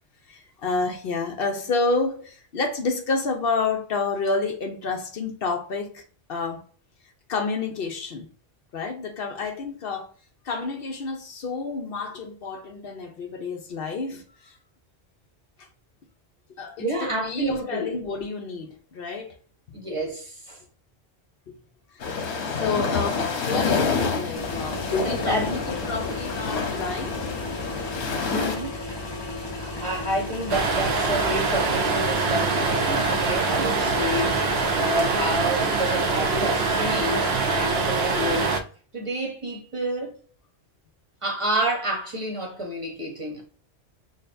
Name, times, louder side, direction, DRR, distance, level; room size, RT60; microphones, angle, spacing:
voice 1, 0.3-6.0 6.3-6.6 7.3-8.3 8.7-10.1 10.4-14.6 15.6-15.7 16.6-19.4 21.5-21.6 22.0-22.3 22.6-27.3 29.1-29.2 34.9-35.0, left 4 dB, 65° left, 0.8 m, -29 dB
voice 2, 16.8-17.9 19.7-20.6 25.0-25.5 28.2-28.7 29.6-34.4 34.8-38.6 38.9-40.2 41.2-43.4, right 1 dB, 30° right, 0.9 m, -29 dB
sound 1, 22.0-28.6, left 5 dB, 80° left, 1.1 m, -28 dB
sound 2, 24.3-35.4, left 2 dB, 25° left, 0.8 m, -34 dB
sound 3, 30.5-38.6, right 4 dB, 70° right, 0.8 m, -24 dB
6.2 x 2.1 x 2.5 m
omnidirectional pair, 1.1 m